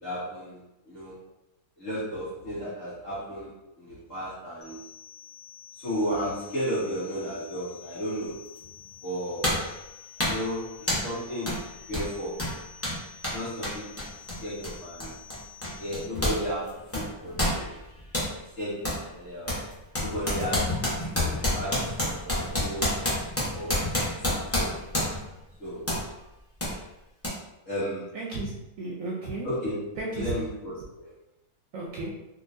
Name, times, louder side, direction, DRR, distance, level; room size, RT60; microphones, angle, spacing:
voice 1, 0.0-1.2 1.8-4.8 5.8-8.4 9.0-9.5 10.2-11.6 11.9-12.4 13.3-13.9 14.4-15.1 15.8-17.7 18.6-18.9 19.1-19.6 20.0-20.8 21.1-23.0 23.5-23.7 24.3-24.8 25.6-25.8 27.6-28.2 29.4-31.1, equal, 40° left, -10 dB, 1.5 m, -34 dB
sound 1, 4.6-16.0, left 8 dB, 80° left, 1.2 m, -49 dB
sound 2, 8.6-8.7 9.4-9.7 10.2-10.5 10.9-11.1 11.5-11.6 11.9-16.4 16.7-18.3 18.8-19.0 19.5-25.3 25.9-26.1 26.6-26.7 27.2-27.3, left 1 dB, 20° left, 0.4 m, -29 dB
voice 2, 28.1-29.5 30.0-30.3 31.7-32.1, right 2 dB, 70° right, -4 dB, 0.8 m, -33 dB
3.9 x 2.3 x 2.5 m, 0.94 s
omnidirectional pair, 1.7 m